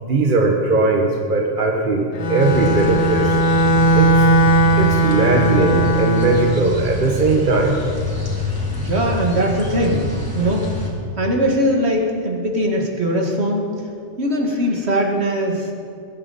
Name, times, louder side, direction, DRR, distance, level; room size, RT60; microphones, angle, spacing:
voice 1, 0.0-3.3 3.9-4.2 4.8-7.8, right 3 dB, 45° right, 0 dB, 1.4 m, -19 dB
Bowed string instrument, 2.1-6.7, right 2 dB, 40° left, 0.7 m, -17 dB
sound 1, 2.4-10.9, left 3 dB, 20° left, 2.9 m, -27 dB
voice 2, 8.8-10.1 10.3-10.7 11.2-13.7 14.2-15.7, equal, 65° right, 0 dB, 2.3 m, -20 dB
21.5 x 11.5 x 4.2 m, 2.4 s
omnidirectional pair, 1.2 m